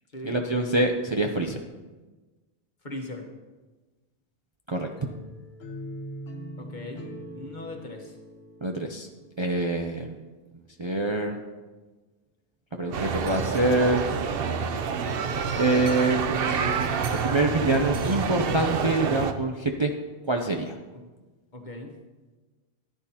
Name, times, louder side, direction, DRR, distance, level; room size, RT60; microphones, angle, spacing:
voice 1, 0.2-1.6 4.7-4.9 8.6-9.1 9.4-10.2 10.8-11.4 12.8-14.0 15.6-16.9 17.2-19.9 20.3-20.8, right 2 dB, 30° right, 2 dB, 0.6 m, -25 dB
voice 2, 2.8-3.3 6.6-7.0 7.3-8.1 12.7-13.6 20.9-21.0 21.5-21.9, left 1 dB, 45° left, 2 dB, 1.4 m, -40 dB
sound 1, 5.0-9.9, equal, 65° left, 1.3 m, -42 dB
sound 2, 12.9-19.3, right 6 dB, 65° right, 0.9 m, -28 dB
14.0 x 10.5 x 2.9 m, 1.2 s
omnidirectional pair, 1.1 m